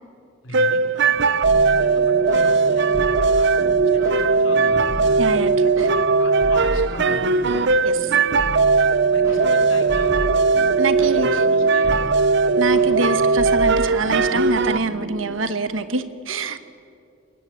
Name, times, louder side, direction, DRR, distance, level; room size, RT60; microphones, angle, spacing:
voice 1, 0.4-4.9 5.6-5.7 6.2-7.6 9.1-10.2 11.0-12.1, left 1 dB, 70° left, 3 dB, 3.8 m, -39 dB
sound 1, 0.5-14.8, right 4 dB, 60° right, 0.7 m, -18 dB
sound 2, 1.4-15.3, equal, 20° right, 7.9 m, -34 dB
voice 2, 5.2-5.9 7.8-8.1 10.8-11.4 12.6-16.6, right 3 dB, 80° right, 11 dB, 1.2 m, -25 dB
28.5 x 18.0 x 7.5 m, 2.5 s
head